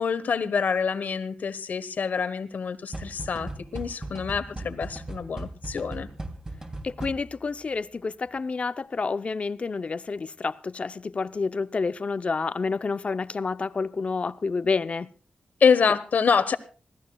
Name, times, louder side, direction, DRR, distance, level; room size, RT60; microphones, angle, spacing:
voice 1, 0.0-6.1 15.6-16.6, left 6 dB, 70° left, 1.3 m, -26 dB
sound 1, 2.9-7.5, right 2 dB, 25° right, 3.0 m, -38 dB
voice 2, 6.8-15.1, left 4 dB, 45° left, 0.7 m, -29 dB
26.5 x 16.5 x 2.3 m
wide cardioid pair, 95°, 3 cm